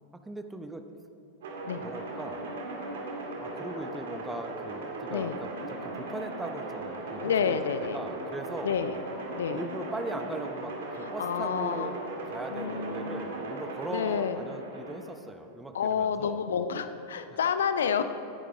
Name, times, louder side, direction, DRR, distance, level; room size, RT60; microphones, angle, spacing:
voice 1, 0.1-0.8 1.8-2.4 3.4-8.8 9.5-12.0 12.3-16.4, right 2 dB, 10° right, 7 dB, 0.8 m, -39 dB
sound 1, 1.4-15.1, right 2 dB, 60° right, 1.9 m, -38 dB
voice 2, 7.2-8.0 8.6-9.0 9.3-9.6 11.0-11.9 12.5-13.2 13.9-14.4 15.7-18.0, left 7 dB, 65° left, 11 dB, 0.5 m, -29 dB
17.0 x 9.9 x 3.6 m, 2.9 s
figure-of-eight pair, 90°, 0 cm